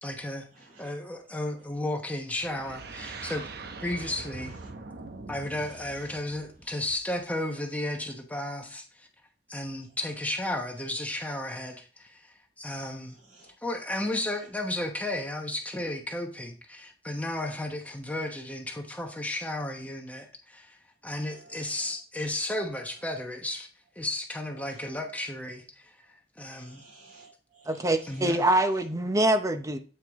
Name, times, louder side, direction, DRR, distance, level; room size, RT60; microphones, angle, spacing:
voice 1, 0.0-0.5 0.8-3.4 3.8-4.5 5.3-9.1 9.5-13.2 13.6-20.8 21.0-23.7 24.0-25.9 26.4-26.8 28.1-28.4, left 1 dB, 10° left, 1.0 m, -33 dB
voice 2, 0.5-0.9 4.6-4.7 5.5-6.2 13.1-13.5 14.1-14.4 21.2-21.9 24.6-25.2 26.5-28.8, right 3 dB, 85° right, 2.5 m, -54 dB
sound 1, 2.4-7.2, right 3 dB, 65° right, 0.8 m, -43 dB
voice 3, 27.7-29.8, right 1 dB, 20° right, 0.7 m, -24 dB
8.5 x 4.6 x 3.6 m
head